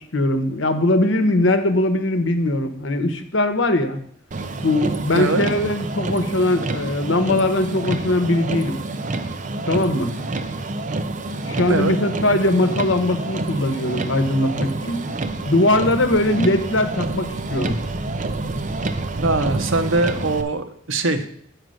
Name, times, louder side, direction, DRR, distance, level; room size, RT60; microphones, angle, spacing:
voice 1, 0.1-4.0 4.6-8.8 9.6-10.1 11.5-15.0 15.4-17.7, left 1 dB, 75° left, 8 dB, 1.0 m, -20 dB
Motor vehicle (road), 4.3-20.4, right 2 dB, 40° right, 0.6 m, -28 dB
voice 2, 19.2-21.3, right 2 dB, 85° right, 9 dB, 0.9 m, -22 dB
9.3 x 4.8 x 6.4 m, 0.65 s
head